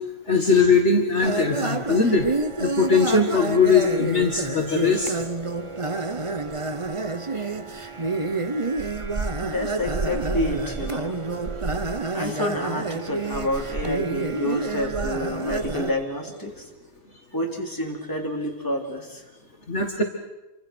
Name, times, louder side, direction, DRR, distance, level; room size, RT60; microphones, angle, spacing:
voice 1, 0.3-2.3 2.6-5.1 7.4-7.5 12.2-12.3 19.7-20.0, left 4 dB, 50° left, 2 dB, 2.1 m, -20 dB
sound 1, 1.2-15.9, right 3 dB, 25° right, 1.0 m, -28 dB
voice 2, 9.4-11.2 12.0-16.7 17.3-19.2, left 1 dB, 15° left, 0 dB, 3.7 m, -29 dB
28.5 x 25.0 x 6.3 m, 1.1 s
omnidirectional pair, 1.6 m